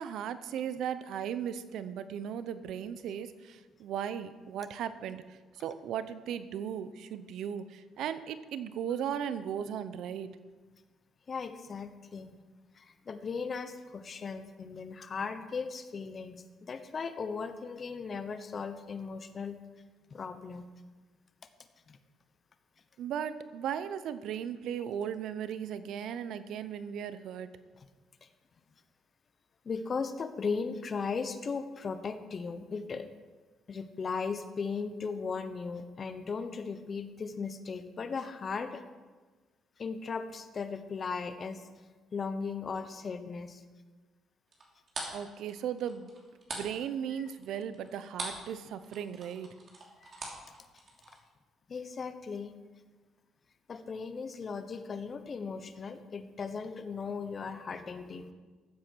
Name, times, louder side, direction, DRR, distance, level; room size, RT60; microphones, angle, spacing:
voice 1, 0.0-10.3 23.0-27.5 45.1-46.1 46.5-49.5, right 9 dB, 75° right, 13 dB, 0.7 m, -37 dB
voice 2, 11.3-12.3 12.7-19.6 20.1-20.7 21.9-22.0 28.2-28.3 29.6-33.1 33.7-38.8 39.8-41.6 42.1-43.6 47.2-47.3 50.0-50.1 51.7-52.6 53.7-58.3, left 5 dB, 40° left, 9 dB, 1.0 m, -37 dB
sound 1, 44.5-48.5 48.8-51.2, right 3 dB, 50° right, 2.9 m, -42 dB
14.0 x 7.8 x 4.6 m, 1.3 s
cardioid pair, 90°, 0 cm